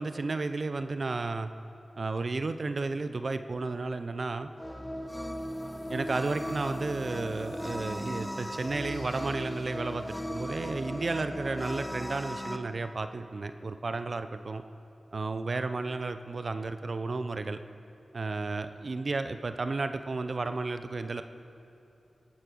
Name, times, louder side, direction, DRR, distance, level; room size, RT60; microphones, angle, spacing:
voice 1, 0.0-1.5 2.0-4.5 5.9-14.6 15.1-17.6 18.1-21.2, right 3 dB, 60° right, 10 dB, 0.6 m, -33 dB
sound 1, 4.6-12.6, equal, 5° left, 1.0 m, -37 dB
sound 2, 4.9-11.8, left 2 dB, 80° left, 1.6 m, -56 dB
18.0 x 8.8 x 6.2 m, 2.8 s
cardioid pair, 45°, 0 cm